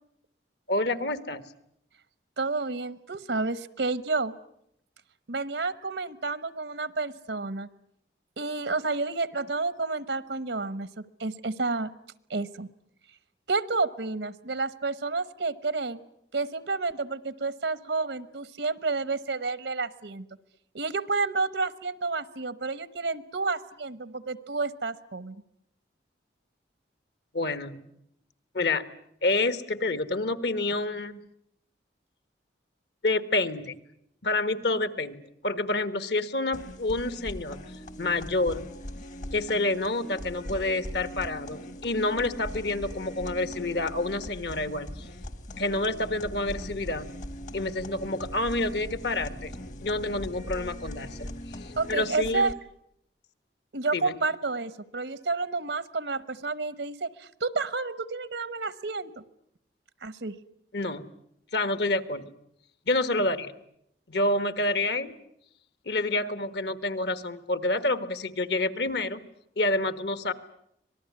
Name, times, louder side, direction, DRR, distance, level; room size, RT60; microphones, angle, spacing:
voice 1, 0.7-1.5 27.3-27.8 28.5-28.8 29.2-31.2 33.0-33.8 34.2-37.6 38.0-38.6 39.3-45.1 45.6-47.1 47.5-49.5 49.8-52.5 53.9-54.1 60.7-61.1 61.5-62.3 62.9-63.5 64.1-65.1 65.8-69.3 69.6-70.3, left 2 dB, 65° left, 13 dB, 1.5 m, -28 dB
voice 2, 2.4-4.3 5.3-7.7 8.4-11.9 12.3-12.7 13.5-16.0 16.3-20.3 20.7-25.4 51.8-52.5 53.7-59.2 60.0-60.4, right 3 dB, 80° right, 16 dB, 1.0 m, -30 dB
sound 1, 36.5-52.5, left 1 dB, 45° left, 1.1 m, -41 dB
sound 2, 41.9-52.0, equal, 85° left, 3.9 m, -48 dB
26.0 x 19.0 x 9.6 m, 0.76 s
head